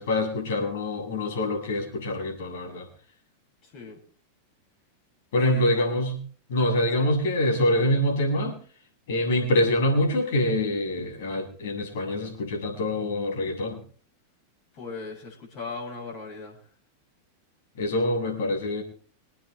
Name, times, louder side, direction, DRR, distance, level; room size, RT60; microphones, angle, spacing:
voice 1, 0.0-2.9 5.3-6.2 6.5-8.5 9.1-13.8 17.8-18.8, left 1 dB, 55° left, 0 dB, 7.7 m, -25 dB
voice 2, 3.6-4.0 5.3-6.1 6.9-7.1 14.7-16.6, left 4 dB, 40° left, -2 dB, 7.2 m, -38 dB
27.0 x 9.7 x 3.5 m, 0.43 s
figure-of-eight pair, 90°, 0 cm